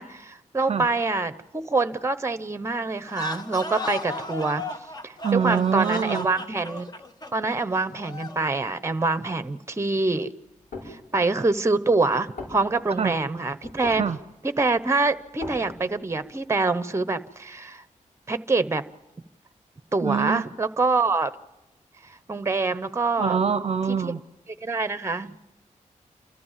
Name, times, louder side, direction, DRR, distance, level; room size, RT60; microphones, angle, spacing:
voice 1, 0.0-4.6 5.0-6.9 7.3-10.3 10.9-14.0 14.6-17.8 18.3-18.8 19.9-21.3 22.3-23.4 23.9-24.1 24.6-25.5, right 3 dB, 20° right, 12 dB, 0.9 m, -25 dB
sound 1, 3.0-8.5, left 1 dB, 30° left, 1.3 m, -35 dB
voice 2, 5.2-6.3 13.0-13.1 13.9-14.2 20.0-20.4 23.2-24.2, right 7 dB, 50° right, 13 dB, 0.6 m, -24 dB
sound 2, 10.5-11.0 11.7-11.8 12.1-12.2 12.4-13.0 13.6-14.2 14.6-14.7 14.9-16.0, left 2 dB, 80° left, 7.0 m, -38 dB
28.5 x 14.0 x 7.4 m, 1.0 s
wide cardioid pair, 115°, 13 cm